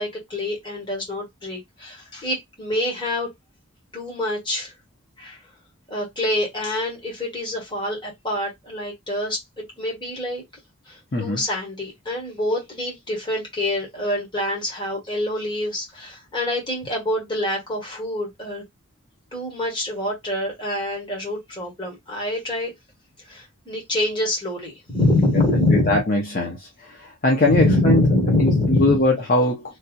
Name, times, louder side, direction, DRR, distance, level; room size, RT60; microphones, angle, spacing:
voice 1, 0.0-3.3 3.9-4.7 5.2-5.4 5.9-10.4 10.9-18.6 19.3-22.7 23.3-26.0 27.4-29.0, left 1 dB, 25° left, 1.5 m, -25 dB
voice 2, 25.9-26.6 27.2-28.0 28.4-29.6, left 2 dB, 45° left, 0.7 m, -20 dB
3.3 x 2.8 x 2.3 m
head